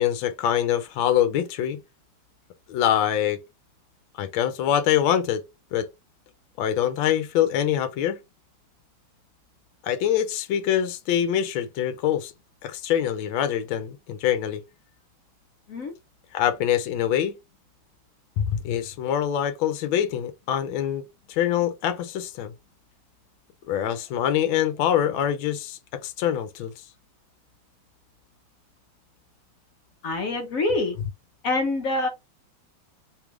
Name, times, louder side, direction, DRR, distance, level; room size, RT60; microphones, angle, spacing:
voice 1, 0.0-1.8 2.7-3.4 4.2-5.4 5.7-5.9 6.6-8.2 9.8-12.3 12.6-14.6 16.3-17.4 18.4-22.5 23.7-26.7, left 10 dB, 80° left, 1.3 m, -24 dB
voice 2, 30.0-31.0 31.4-32.1, left 2 dB, 60° left, 0.9 m, -25 dB
3.4 x 2.4 x 3.0 m
omnidirectional pair, 2.2 m